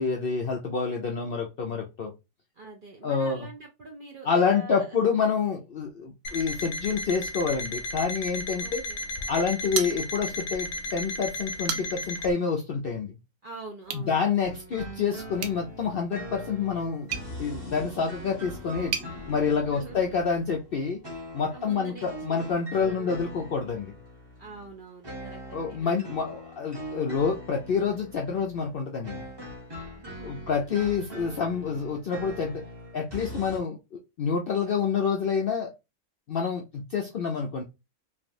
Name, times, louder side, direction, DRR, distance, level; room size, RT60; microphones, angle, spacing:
voice 1, 0.0-2.1 3.0-3.5 4.2-8.8 9.3-13.2 13.9-17.1 17.4-18.9 19.3-21.0 21.3-23.9 25.5-29.2 30.2-32.6 32.9-35.7 36.3-37.6, left 5 dB, 65° left, 0.5 m, -28 dB
voice 2, 2.6-5.0 8.6-9.0 13.4-14.5 19.6-20.1 21.5-22.4 22.8-23.2 24.4-26.3 29.9-30.4 30.8-31.3, right 3 dB, 60° right, 0.5 m, -44 dB
Alarm, 6.2-12.3, left 2 dB, 85° left, 1.1 m, -34 dB
sound 1, 9.7-10.5 10.9-11.0 11.4-12.2 13.8-14.1 15.4-19.1, right 7 dB, 90° right, 1.1 m, -36 dB
sound 2, 14.4-33.6, equal, 20° right, 0.9 m, -42 dB
3.3 x 2.4 x 2.5 m
omnidirectional pair, 1.5 m